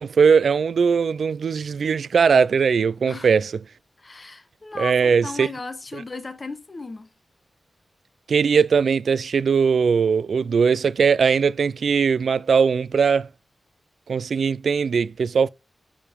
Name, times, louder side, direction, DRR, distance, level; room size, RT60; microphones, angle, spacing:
voice 1, 0.0-3.5 4.8-5.5 5.9-6.0 8.3-13.3 14.1-15.5, right 6 dB, 80° right, 0.4 m, -20 dB
voice 2, 4.0-7.1, left 3 dB, 35° left, 1.0 m, -36 dB
9.7 x 5.2 x 3.6 m
wide cardioid pair, 130°, 0 cm